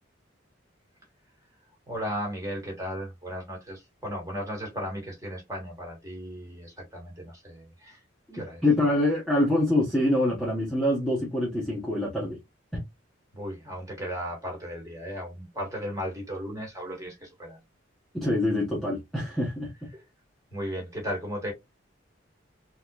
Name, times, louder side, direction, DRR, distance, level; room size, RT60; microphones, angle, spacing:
voice 1, 1.9-8.0 8.3-8.6 13.3-17.6 19.9-20.1 20.5-21.5, equal, 15° right, 1.7 m, -35 dB
voice 2, 8.3-12.4 12.7-12.8 18.1-19.7, left 1 dB, ahead, 1.1 m, -25 dB
3.9 x 3.0 x 2.3 m
head